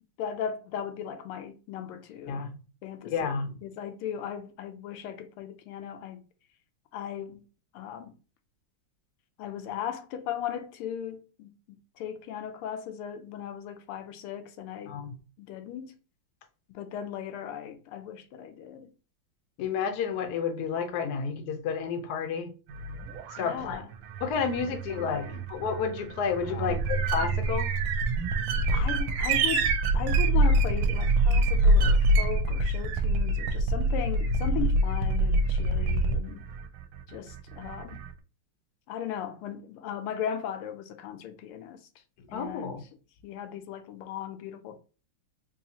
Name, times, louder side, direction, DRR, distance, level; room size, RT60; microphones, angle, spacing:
voice 1, 0.2-2.5 2.8-3.3 3.6-6.2 6.9-7.4 7.7-8.1 9.4-14.9 15.4-16.0 16.7-18.9 23.4-23.9 24.6-25.4 26.5-26.8 28.7-36.4 37.1-38.0 38.9-41.8 42.3-42.8 43.2-44.8, left 9 dB, 85° left, 1.5 m, -37 dB
voice 2, 2.3-2.6 3.1-3.6 14.9-15.1 19.6-22.5 23.4-23.8 24.2-27.7 42.3-42.8, left 6 dB, 65° left, 1.0 m, -31 dB
sound 1, 22.7-38.1, right 2 dB, 80° right, 1.4 m, -26 dB
4.2 x 2.7 x 2.8 m
omnidirectional pair, 2.4 m